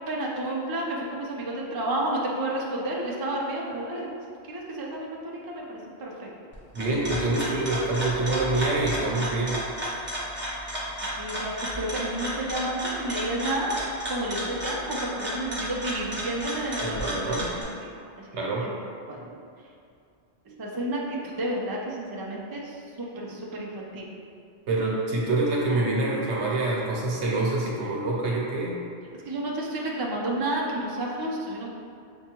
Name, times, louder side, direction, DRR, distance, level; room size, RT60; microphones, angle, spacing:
voice 1, 0.1-4.1 4.5-6.3 11.2-17.2 17.5-17.9 18.2-18.7 19.1-19.3 20.5-24.0 29.3-31.7, right 1 dB, 40° right, -3 dB, 0.3 m, -31 dB
sound 1, 6.5-17.6, equal, 10° right, 0.7 m, -33 dB
voice 2, 6.7-9.6 16.8-17.4 18.3-18.6 24.7-28.7, right 2 dB, 80° right, -4 dB, 1.1 m, -26 dB
6.4 x 2.2 x 2.9 m, 2.4 s
omnidirectional pair, 1.2 m